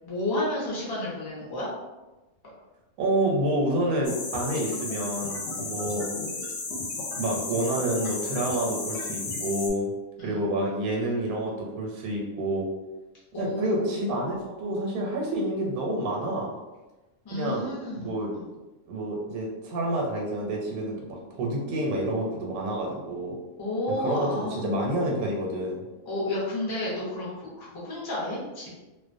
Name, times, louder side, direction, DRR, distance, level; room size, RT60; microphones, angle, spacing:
voice 1, 0.0-1.7 10.2-10.4 13.3-13.9 17.2-18.5 23.6-24.7 26.1-28.7, left 1 dB, 30° left, -6 dB, 0.4 m, -31 dB
voice 2, 3.0-6.1 7.2-9.9 10.2-12.7 13.4-16.5 17.3-18.3 18.9-23.3 23.9-25.9, right 1 dB, 85° right, -1 dB, 1.1 m, -28 dB
sound 1, 4.0-9.7, left 3 dB, 70° left, 0.9 m, -33 dB
2.4 x 2.1 x 2.5 m, 1.1 s
omnidirectional pair, 1.5 m